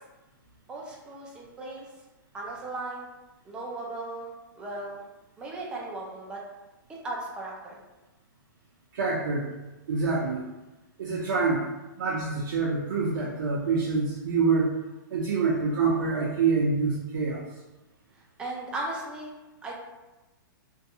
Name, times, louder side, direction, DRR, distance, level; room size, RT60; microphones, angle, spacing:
voice 1, 0.7-1.9 2.3-3.1 3.5-5.0 5.4-6.4 7.0-7.8 18.4-19.3 19.6-19.7, right 2 dB, 10° right, -2 dB, 0.3 m, -36 dB
voice 2, 8.9-9.5 9.9-10.5 11.0-11.7 12.0-14.7 15.1-17.4, right 4 dB, 70° right, -5 dB, 0.5 m, -26 dB
2.6 x 2.2 x 2.7 m, 1.1 s
hypercardioid pair, 160°, 12 cm